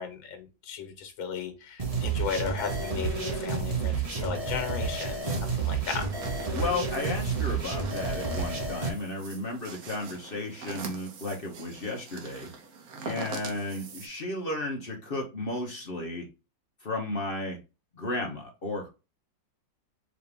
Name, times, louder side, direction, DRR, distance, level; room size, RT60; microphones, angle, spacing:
voice 1, 0.0-6.1, left 6 dB, 85° left, 7 dB, 1.8 m, -35 dB
sound 1, 1.8-8.9, right 4 dB, 40° right, 0.5 m, -30 dB
sound 2, 5.2-14.1, right 4 dB, 60° right, 1.2 m, -43 dB
voice 2, 6.5-12.5 13.1-16.2 16.8-17.6 17.9-18.9, left 2 dB, 40° left, 0 dB, 0.8 m, -33 dB
4.9 x 2.7 x 3.3 m, 0.28 s
omnidirectional pair, 2.1 m